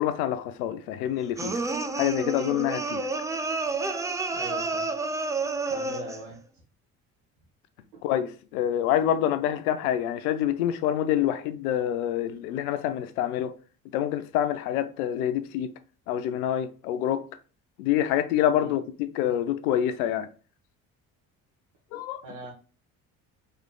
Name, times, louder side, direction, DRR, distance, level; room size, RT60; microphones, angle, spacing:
voice 1, 0.0-1.6 2.0-3.0 8.0-13.5 13.9-15.7 16.1-17.3 17.8-20.3 21.9-22.2, left 11 dB, 80° left, 0.6 m, -26 dB
sound 1, 1.4-6.3, right 3 dB, 10° right, 0.3 m, -30 dB
voice 2, 4.2-4.9 5.7-6.4 7.9-8.0 18.5-18.8 22.2-22.5, right 2 dB, 70° right, 1.2 m, -41 dB
4.6 x 3.2 x 2.2 m
hypercardioid pair, 55°, 44 cm